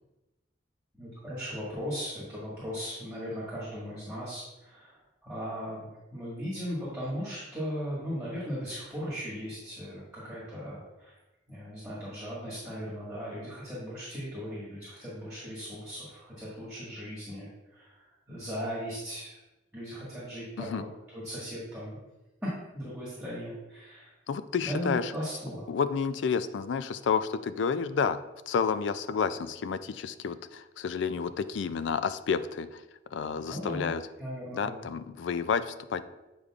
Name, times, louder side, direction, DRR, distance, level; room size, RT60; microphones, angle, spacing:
voice 1, 1.0-11.1 11.5-19.4 19.7-20.9 21.1-22.0 22.4-24.1 24.6-25.6 33.4-33.9 34.2-34.8, equal, 5° right, -9 dB, 1.6 m, -37 dB
voice 2, 24.3-25.1 25.7-32.8 33.1-34.0 34.5-36.0, left 6 dB, 70° left, 13 dB, 0.3 m, -30 dB
7.9 x 5.0 x 2.4 m, 1.0 s
head